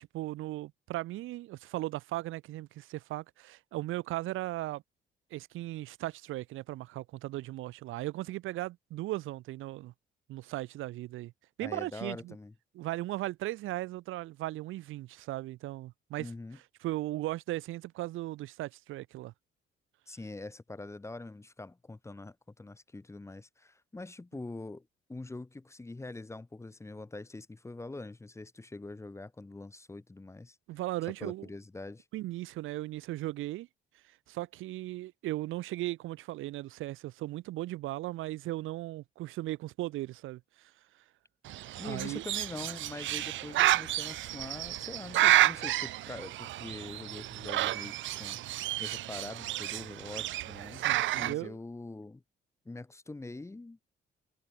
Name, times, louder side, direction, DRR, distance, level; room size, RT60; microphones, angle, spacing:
voice 1, 0.0-4.8 5.3-9.9 10.3-11.3 11.6-12.3 12.7-16.3 16.8-19.3 30.7-31.5 32.1-33.7 34.3-40.7 41.8-42.2 50.7-51.6, right 16 dB, 90° right, 1.5 m, -37 dB
voice 2, 11.6-12.5 16.2-16.6 20.1-30.6 31.2-32.0 41.8-48.4 48.8-52.2 52.6-53.8, left 2 dB, 15° left, 0.9 m, -44 dB
Bird, 41.5-51.3, right 15 dB, 75° right, 0.6 m, -30 dB
cardioid pair, 90°, 20 cm